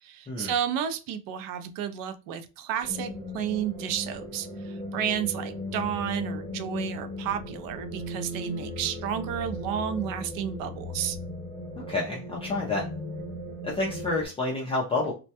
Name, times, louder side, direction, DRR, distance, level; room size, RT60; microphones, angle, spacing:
voice 1, 0.0-11.2, right 9 dB, 60° right, 10 dB, 0.5 m, -32 dB
sound 1, 2.8-14.3, left 1 dB, 25° right, 0.7 m, -37 dB
voice 2, 11.8-12.9 13.6-15.1, left 2 dB, 15° left, -4 dB, 0.4 m, -29 dB
2.2 x 2.1 x 2.7 m, 0.31 s
cardioid pair, 140°, 38 cm